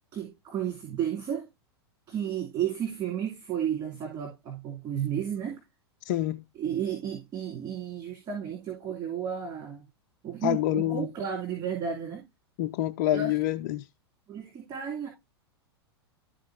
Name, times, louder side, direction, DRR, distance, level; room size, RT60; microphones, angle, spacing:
voice 1, 0.1-1.5 2.1-5.6 6.5-9.9 10.2-12.2 13.1-13.4 14.3-15.1, right 8 dB, 30° right, 2.8 m, -33 dB
voice 2, 6.1-6.4 10.4-11.1 12.6-13.9, left 13 dB, 45° left, 0.5 m, -27 dB
13.0 x 4.5 x 2.6 m
figure-of-eight pair, 95°, 14 cm